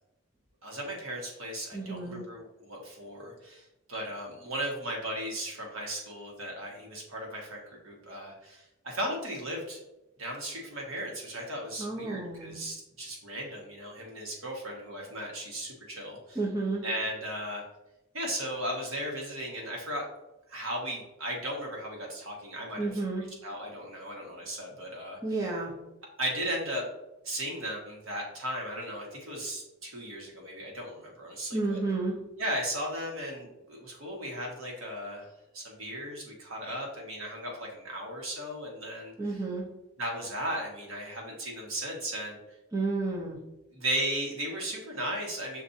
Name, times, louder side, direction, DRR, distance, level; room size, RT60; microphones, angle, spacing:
voice 1, 0.6-9.8 10.2-16.4 16.8-17.6 18.1-20.0 20.5-23.0 23.4-25.2 26.2-26.8 27.2-31.8 32.4-39.1 40.0-42.4 43.7-45.6, right 1 dB, 70° right, -1 dB, 1.2 m, -36 dB
voice 2, 1.7-2.3 11.8-12.6 16.3-16.8 22.8-23.3 25.2-25.8 31.5-32.2 39.2-39.7 42.7-43.4, right 3 dB, 15° right, -3 dB, 0.6 m, -31 dB
7.0 x 2.5 x 2.6 m, 0.94 s
head